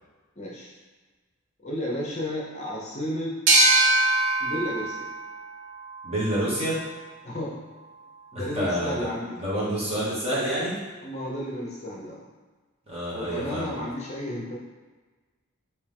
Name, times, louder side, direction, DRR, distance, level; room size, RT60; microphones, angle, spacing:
voice 1, 0.4-0.7 1.6-3.3 4.4-5.0 7.2-7.5 8.3-9.4 11.0-12.2 13.1-14.6, left 1 dB, 35° left, -4 dB, 0.6 m, -32 dB
sound 1, 3.5-6.8, right 2 dB, 65° right, 0.5 m, -23 dB
voice 2, 6.0-6.8 8.3-9.1 9.4-10.8 12.9-13.8, right 1 dB, 30° right, -8 dB, 1.3 m, -28 dB
3.4 x 2.9 x 3.5 m, 1.3 s
head